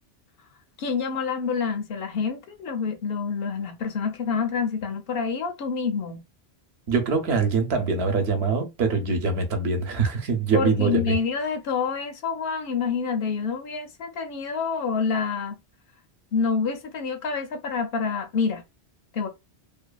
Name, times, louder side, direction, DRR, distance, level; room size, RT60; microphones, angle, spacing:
voice 1, 0.8-6.2 10.5-15.6 16.3-18.6 19.1-19.3, left 5 dB, 60° left, 0.8 m, -27 dB
voice 2, 6.9-11.1, right 4 dB, 70° right, 0.9 m, -23 dB
2.6 x 2.2 x 2.2 m
omnidirectional pair, 1.1 m